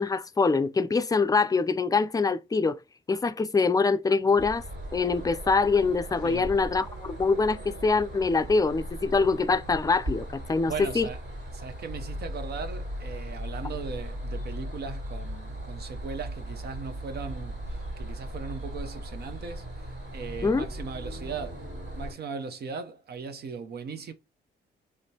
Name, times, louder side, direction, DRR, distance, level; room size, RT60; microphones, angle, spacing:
voice 1, 0.0-2.8 3.1-4.6 4.9-11.1 20.4-20.7, left 4 dB, 20° left, 0.4 m, -24 dB
sound 1, 4.4-22.1, equal, 75° right, 2.6 m, -38 dB
voice 2, 10.7-11.2 11.5-19.7 20.1-21.7 21.9-24.1, right 5 dB, 60° right, 0.7 m, -38 dB
5.0 x 3.3 x 2.8 m
cardioid pair, 90°, 19 cm